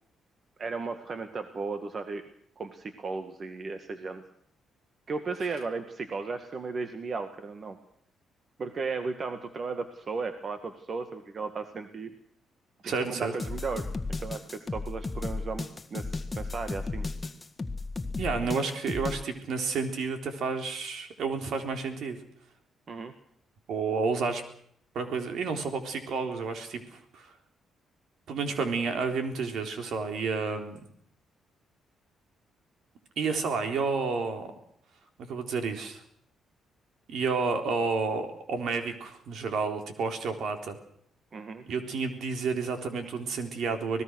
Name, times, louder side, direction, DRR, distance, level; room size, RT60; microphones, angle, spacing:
voice 1, 0.6-2.2 2.6-4.2 5.1-7.8 8.6-12.1 12.8-17.1 22.9-23.1 41.3-41.6, right 4 dB, 45° right, 8 dB, 1.9 m, -35 dB
voice 2, 12.8-13.3 18.2-22.2 23.7-24.4 24.9-27.3 28.3-30.8 33.2-34.5 35.3-36.0 37.1-40.8 41.7-44.0, right 4 dB, 70° right, 6 dB, 3.8 m, -30 dB
sound 1, 13.4-19.2, left 3 dB, 20° left, 1.8 m, -34 dB
25.0 x 19.0 x 6.4 m, 0.66 s
cardioid pair, 90°, 0 cm